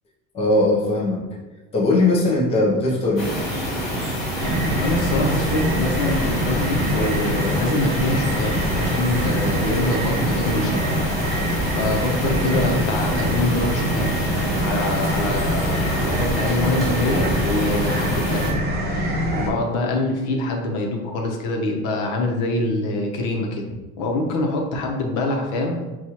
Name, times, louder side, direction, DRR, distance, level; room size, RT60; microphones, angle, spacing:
voice 1, 0.3-1.3 1.7-3.4, left 2 dB, 20° left, -4 dB, 0.6 m, -19 dB
sound 1, 3.2-18.5, equal, ahead, 1.5 m, -27 dB
sound 2, 4.4-19.5, equal, 35° right, 0.5 m, -25 dB
voice 2, 4.8-11.0 11.7-14.2 14.5-18.6 19.3-25.8, left 2 dB, 75° left, 1 dB, 0.9 m, -25 dB
5.9 x 2.4 x 2.9 m, 1.2 s
cardioid pair, 170°, 31 cm